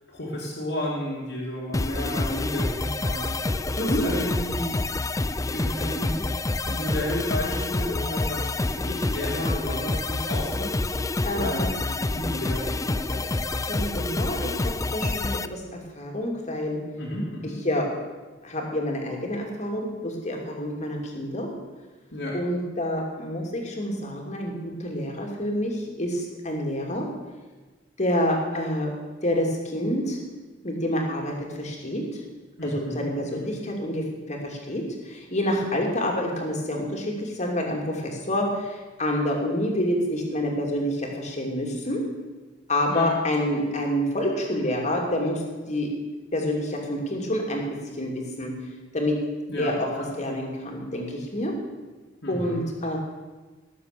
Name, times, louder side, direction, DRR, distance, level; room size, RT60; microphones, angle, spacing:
voice 1, 0.1-3.3 3.8-4.8 5.5-6.3 6.7-10.8 11.3-13.4 17.0-17.6 22.1-22.4 32.6-33.0 33.3-33.4 42.9-43.1 49.5-50.1 52.2-52.6, left 1 dB, 65° left, -6 dB, 2.9 m, -32 dB
sound 1, 1.7-15.5, left 2 dB, 15° left, 0.5 m, -28 dB
voice 2, 11.2-11.7 13.7-16.8 17.6-17.9 18.4-21.5 22.3-27.0 28.0-28.9 29.2-30.2 30.6-32.2 32.6-42.0 42.7-45.9 46.3-47.6 48.0-48.5 48.9-49.1 49.6-49.9 50.2-51.5 52.3-53.0, left 1 dB, 40° left, 1 dB, 2.8 m, -28 dB
19.0 x 7.6 x 6.8 m, 1.3 s
head